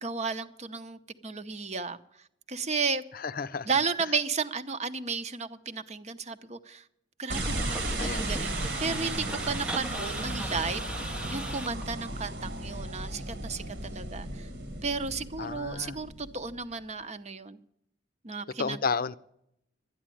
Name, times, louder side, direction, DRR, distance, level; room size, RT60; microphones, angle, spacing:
voice 1, 0.0-2.0 2.5-3.0 3.6-6.8 7.2-10.9 11.3-14.5 14.8-17.6 18.2-18.8, right 4 dB, 35° right, 0.8 m, -33 dB
voice 2, 3.1-3.7 8.0-8.3 15.4-16.0 18.6-19.1, left 5 dB, 50° left, 0.6 m, -32 dB
sound 1, 7.3-11.9 16.5-16.6, right 1 dB, 5° right, 0.7 m, -38 dB
sound 2, 7.3-16.7, right 1 dB, 70° right, 1.6 m, -35 dB
12.0 x 10.0 x 9.1 m
head